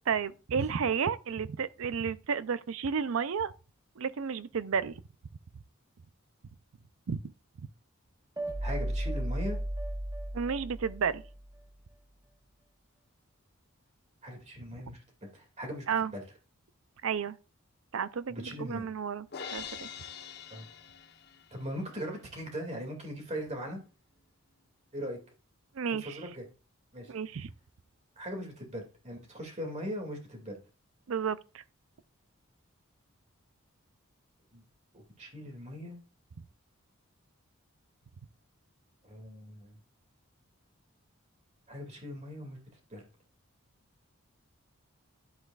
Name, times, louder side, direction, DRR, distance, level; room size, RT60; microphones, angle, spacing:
voice 1, 0.1-3.5 4.0-5.0 7.1-7.3 10.3-11.2 15.9-16.1 17.0-17.4 17.9-19.3 19.5-19.9 25.7-26.2 27.1-27.5 31.1-31.6, right 6 dB, 70° right, 0.5 m, -32 dB
sound 1, 8.4-11.5, right 1 dB, 15° right, 0.6 m, -35 dB
voice 2, 8.6-9.6 14.2-15.9 16.1-16.2 18.3-18.9 20.5-20.7 21.5-23.8 24.9-25.2 25.9-26.4 26.9-27.1 28.2-30.6 34.5-34.6 34.9-36.0 39.0-39.8 41.7-42.6 42.9-43.1, equal, 30° right, 2.3 m, -40 dB
Crash cymbal, 19.3-21.6, left 7 dB, 50° left, 1.0 m, -43 dB
10.5 x 7.9 x 2.4 m
head